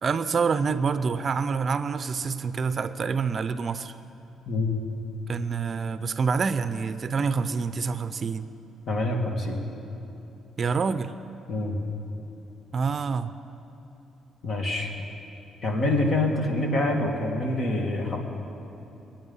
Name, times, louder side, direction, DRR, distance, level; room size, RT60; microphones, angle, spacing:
voice 1, 0.0-3.9 5.3-8.5 10.6-11.1 12.7-13.3, right 5 dB, 45° right, 12 dB, 0.5 m, -27 dB
voice 2, 4.5-4.8 8.9-9.6 11.5-11.8 14.4-14.9 15.6-18.2, left 2 dB, 50° left, 1 dB, 2.4 m, -26 dB
23.0 x 9.0 x 5.5 m, 2.9 s
cardioid pair, 90°, 0 cm